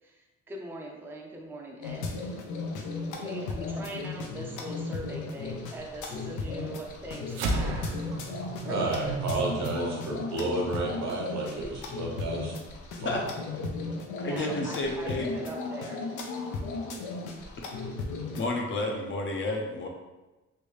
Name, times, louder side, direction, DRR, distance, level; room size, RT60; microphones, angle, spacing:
voice 1, 0.0-2.3 3.2-7.8 8.6-9.3 14.2-16.0 17.7-17.8, right 1 dB, 5° right, -1 dB, 0.5 m, -41 dB
sound 1, 1.8-18.5, left 3 dB, 80° left, 0.6 m, -36 dB
sound 2, 7.3-11.9, right 2 dB, 85° right, 0.5 m, -35 dB
voice 2, 8.7-12.5 13.0-13.2, right 2 dB, 65° right, -1 dB, 1.0 m, -31 dB
voice 3, 14.2-15.3 18.4-19.9, left 2 dB, 40° left, 0 dB, 0.6 m, -31 dB
3.3 x 2.6 x 3.1 m, 1.1 s
cardioid pair, 90°, 30 cm